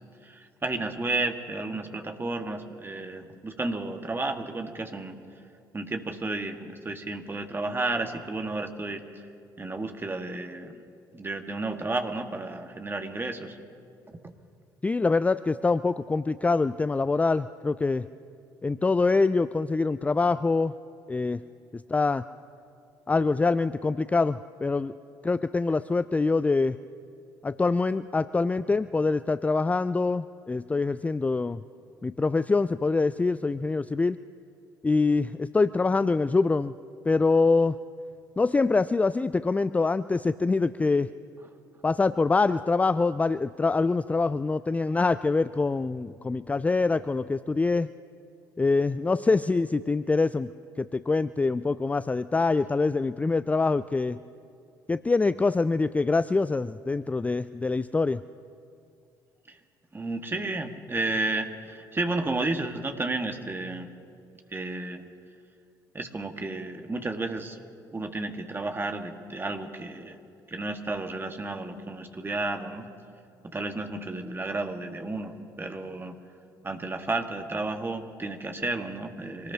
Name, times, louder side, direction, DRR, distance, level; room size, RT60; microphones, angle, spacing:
voice 1, 0.2-5.1 5.7-9.0 9.6-10.8 11.1-13.6 59.5-59.6 59.9-63.9 64.5-65.1 65.9-67.6 67.9-70.2 70.5-72.9 73.5-76.1 76.6-79.5, right 2 dB, 20° right, 5 dB, 1.7 m, -32 dB
voice 2, 14.8-18.1 18.6-20.7 21.1-21.4 21.7-22.2 23.1-24.9 25.2-26.8 27.4-31.6 32.0-34.2 34.8-36.7 37.1-37.8 38.4-41.1 41.8-47.9 48.6-50.5 50.8-54.2 54.9-58.2, left 3 dB, 15° left, 15 dB, 0.3 m, -25 dB
26.0 x 19.0 x 2.8 m, 2.4 s
figure-of-eight pair, 50°, 11 cm